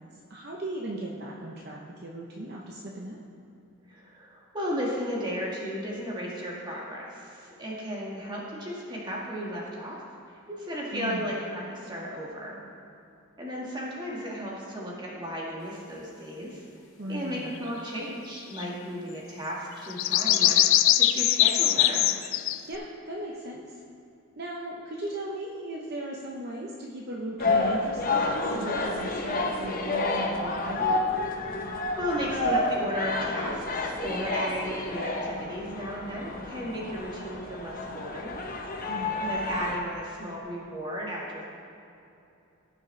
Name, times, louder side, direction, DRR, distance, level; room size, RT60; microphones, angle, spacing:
voice 1, 0.3-3.2 10.9-11.3 17.0-17.5 22.7-23.8 24.4-31.0 38.9-39.2, right 1 dB, 50° right, -2 dB, 0.8 m, -37 dB
voice 2, 3.9-10.0 10.5-12.6 13.4-16.6 17.1-22.1 32.0-38.3 39.2-41.4, equal, 20° right, -4 dB, 1.7 m, -34 dB
sound 1, 18.6-18.7 19.9-22.8, left 13 dB, 70° left, 0.4 m, -22 dB
sound 2, 27.4-39.8, left 2 dB, 40° left, 0.8 m, -30 dB
16.5 x 6.3 x 3.3 m, 2.7 s
head